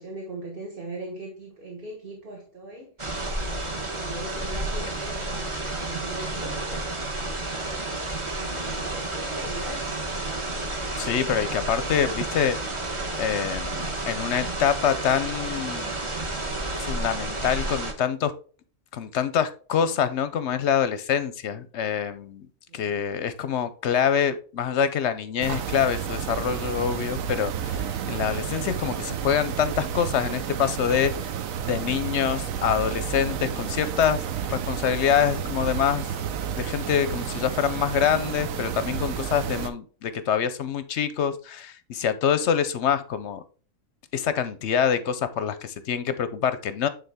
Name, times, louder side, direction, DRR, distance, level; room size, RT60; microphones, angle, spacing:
voice 1, 0.0-2.9 3.4-6.8 7.3-10.6 21.5-21.6 22.7-23.1, right 2 dB, 45° right, 1.5 m, -40 dB
sound 1, 3.0-17.9, right 2 dB, 25° right, 1.0 m, -31 dB
voice 2, 11.0-12.6 13.2-16.0 16.8-18.3 18.9-22.5 22.7-31.1 31.6-34.2 34.5-36.1 36.5-43.4 44.1-46.9, left 8 dB, 65° left, 0.8 m, -25 dB
sound 2, 25.4-39.7, right 8 dB, 80° right, 1.1 m, -31 dB
9.1 x 3.8 x 3.4 m
omnidirectional pair, 1.4 m